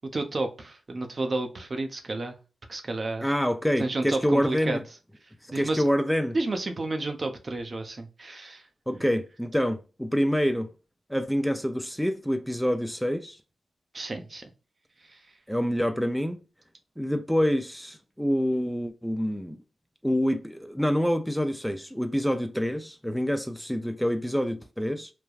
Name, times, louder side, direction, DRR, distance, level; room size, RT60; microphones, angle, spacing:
voice 1, 0.1-2.4 2.7-3.3 3.8-4.8 5.5-5.8 6.3-8.7 13.9-14.5 15.1-15.2, right 2 dB, 50° right, 0.6 m, -31 dB
voice 2, 3.2-4.8 5.6-6.4 8.9-10.7 11.1-13.4 15.5-16.4 17.0-19.6 20.0-25.1, equal, 5° left, 0.4 m, -26 dB
3.2 x 2.2 x 2.3 m
cardioid pair, 45°, 0 cm